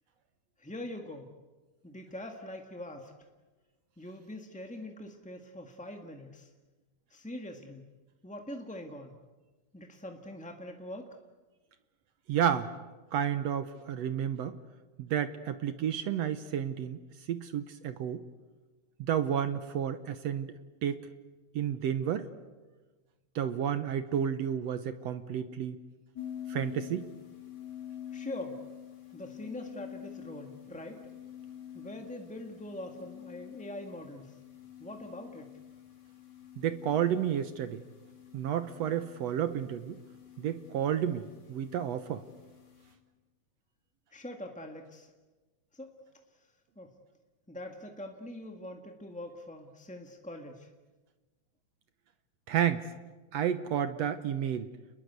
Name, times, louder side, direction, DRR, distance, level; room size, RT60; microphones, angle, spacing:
voice 1, 0.6-1.3 1.8-3.1 4.0-6.5 7.1-7.9 8.2-9.1 9.7-11.1 28.1-28.6 29.1-31.1 31.7-34.4 34.8-35.5 44.1-45.1 45.7-45.9 46.7-46.9 47.5-50.7, left 1 dB, 5° left, 3 dB, 0.8 m, -43 dB
voice 2, 12.3-12.7 13.1-14.6 15.0-17.0 17.3-18.2 19.0-20.5 20.8-21.1 21.6-22.3 23.4-25.8 26.5-27.1 36.6-37.8 38.3-40.0 40.4-42.2 52.5-52.9 53.3-54.7, right 9 dB, 65° right, 11 dB, 1.9 m, -31 dB
sound 1, 26.2-42.9, left 10 dB, 35° left, 3.4 m, -47 dB
30.0 x 21.0 x 8.2 m, 1.3 s
omnidirectional pair, 3.5 m